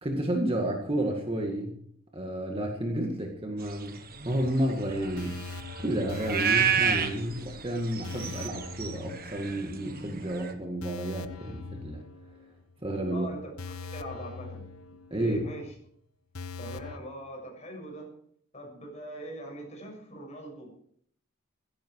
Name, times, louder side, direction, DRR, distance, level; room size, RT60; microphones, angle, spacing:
voice 1, 0.0-1.8 2.1-5.4 5.8-12.0 12.8-13.3 15.1-15.4, right 1 dB, 25° right, 2 dB, 2.0 m, -31 dB
sound 1, 3.7-10.5, right 7 dB, 40° right, 1.5 m, -31 dB
sound 2, 4.4-10.0 10.3-10.4 10.8-12.7 13.0-13.1 13.6-15.5 15.8-15.9 16.3-17.0, left 4 dB, 80° left, 1.0 m, -42 dB
voice 2, 13.1-13.5 13.9-14.7 15.1-15.7 16.6-18.1 18.5-20.8, right 1 dB, 30° left, 1 dB, 7.0 m, -41 dB
16.0 x 15.0 x 4.8 m, 0.64 s
head